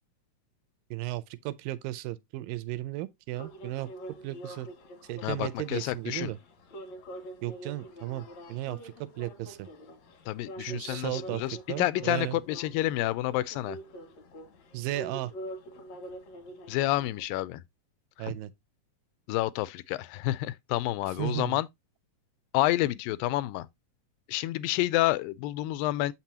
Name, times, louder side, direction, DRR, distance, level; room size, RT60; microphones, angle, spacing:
voice 1, 0.9-3.9 4.2-4.7 5.1-6.4 7.4-9.7 10.6-12.4 14.7-15.3 18.2-18.5 21.2-21.6, right 16 dB, 85° right, 2.3 m, -35 dB
sound 1, 3.4-17.2, right 1 dB, 60° left, 2.4 m, -45 dB
voice 2, 5.2-6.3 10.3-13.8 16.7-17.6 18.2-18.4 19.3-21.7 22.5-23.7 24.3-26.1, left 16 dB, 85° left, 2.3 m, -29 dB
7.5 x 6.0 x 2.8 m
omnidirectional pair, 4.0 m